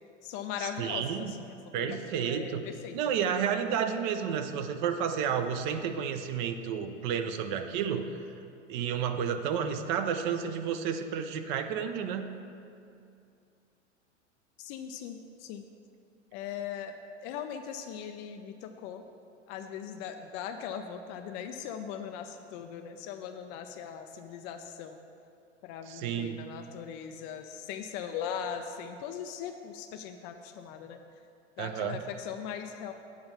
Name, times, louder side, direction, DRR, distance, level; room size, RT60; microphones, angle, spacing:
voice 1, 0.2-3.1 14.6-15.6 16.3-16.9 17.2-19.1 19.5-25.0 25.6-31.0 31.6-32.9, left 8 dB, 30° left, 7 dB, 0.4 m, -39 dB
voice 2, 0.8-1.3 1.7-2.6 2.9-8.3 8.7-12.3 25.9-26.4 31.6-32.0, right 7 dB, 40° right, 8 dB, 0.6 m, -31 dB
7.3 x 4.7 x 6.9 m, 2.5 s
figure-of-eight pair, 90°, 36 cm